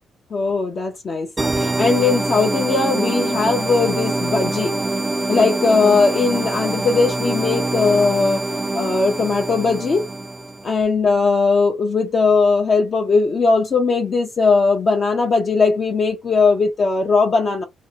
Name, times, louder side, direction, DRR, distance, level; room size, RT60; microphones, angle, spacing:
voice 1, 0.3-1.3 1.6-4.7 5.3-8.4 8.7-10.1 10.6-17.6, left 4 dB, 45° left, 0.6 m, -18 dB
sound 1, 1.4-10.7, right 2 dB, 25° right, 0.3 m, -24 dB
2.6 x 2.0 x 2.7 m
cardioid pair, 85°, 0 cm